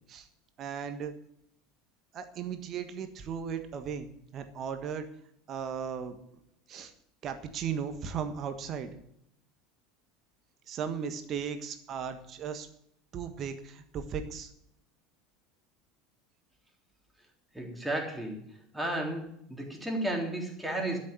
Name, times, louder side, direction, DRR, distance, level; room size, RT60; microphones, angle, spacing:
voice 1, 0.6-1.1 2.1-5.1 5.5-6.1 6.7-6.9 7.2-8.9 10.7-12.7 13.1-14.5, right 7 dB, 40° right, 8 dB, 1.5 m, -36 dB
voice 2, 17.5-18.4 18.7-19.2 19.5-21.0, right 1 dB, 5° right, 0 dB, 3.6 m, -33 dB
12.5 x 6.7 x 9.4 m, 0.72 s
figure-of-eight pair, 70°, 0 cm